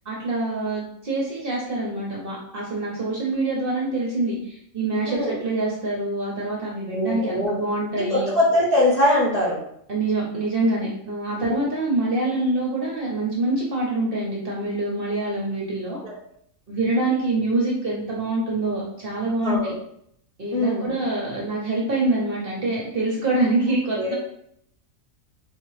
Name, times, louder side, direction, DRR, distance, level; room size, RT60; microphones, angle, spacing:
voice 1, 0.0-8.3 9.9-16.0 16.7-19.7 20.4-24.1, right 2 dB, 50° right, -3 dB, 0.9 m, -25 dB
voice 2, 6.9-7.6 8.0-9.6 11.3-11.5 16.0-16.1 19.4-19.7 20.5-20.9 24.0-24.1, left 1 dB, 35° left, -7 dB, 0.8 m, -22 dB
4.0 x 2.8 x 3.1 m, 0.70 s
omnidirectional pair, 1.5 m